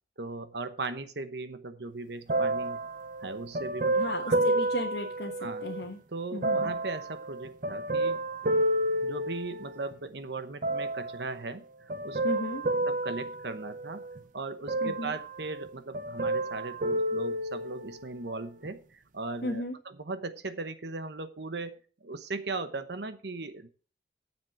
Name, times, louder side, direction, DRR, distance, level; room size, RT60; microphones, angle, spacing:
voice 1, 0.2-2.8 3.2-3.9 4.3-4.4 5.4-5.6 6.1-8.2 9.0-11.6 12.0-12.2 12.8-14.0 14.3-21.8 22.0-23.7, right 3 dB, 75° right, 10 dB, 1.0 m, -38 dB
sound 1, 2.3-5.9 6.4-9.9 10.6-11.3 11.9-14.2 14.7-15.7 15.9-18.0 18.6-18.7, right 2 dB, 45° right, 0.6 m, -30 dB
voice 2, 4.0-5.3 5.6-6.0 6.3-6.7 12.2-12.6 14.8-15.1 19.4-19.8, left 2 dB, 70° left, 0 dB, 1.3 m, -34 dB
9.4 x 7.4 x 5.9 m, 0.39 s
head